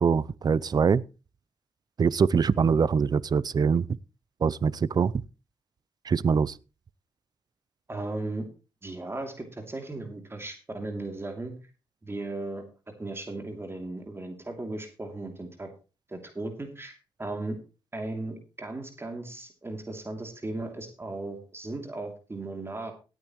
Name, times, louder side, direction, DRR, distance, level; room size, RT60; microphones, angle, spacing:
voice 1, 0.0-1.0 2.0-3.9 4.4-5.2 6.0-6.6, right 6 dB, 45° right, 0.5 m, -23 dB
voice 2, 7.9-8.4 8.8-11.5 12.0-12.6 13.0-15.7 16.1-17.6 17.9-22.9, right 2 dB, 25° right, 2.8 m, -36 dB
17.5 x 9.1 x 3.1 m
cardioid pair, 70°, 10 cm